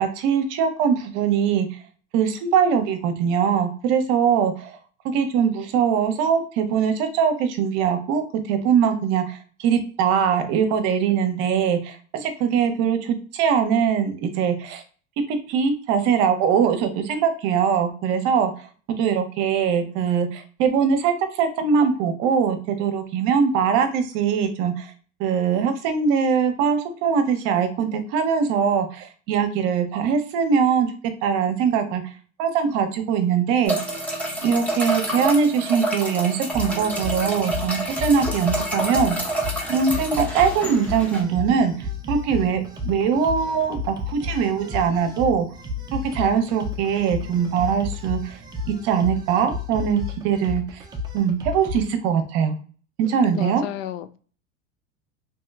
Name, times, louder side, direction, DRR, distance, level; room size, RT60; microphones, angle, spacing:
voice 1, 0.0-1.7 2.1-4.8 5.1-14.8 15.3-18.5 18.9-24.9 25.2-30.9 31.2-32.0 32.4-33.8 34.4-39.2 39.7-41.7 42.1-45.5 45.9-48.4 48.7-50.8 51.1-52.6 53.0-53.6, right 7 dB, 55° right, 7 dB, 0.8 m, -22 dB
sound 1, 33.6-41.2, right 1 dB, 5° left, 0.8 m, -28 dB
sound 2, 36.5-51.9, left 3 dB, 10° right, 0.4 m, -33 dB
voice 2, 53.0-54.2, left 12 dB, 75° left, 11 dB, 0.5 m, -33 dB
3.0 x 2.8 x 2.3 m, 0.41 s
supercardioid pair, 120°, 39 cm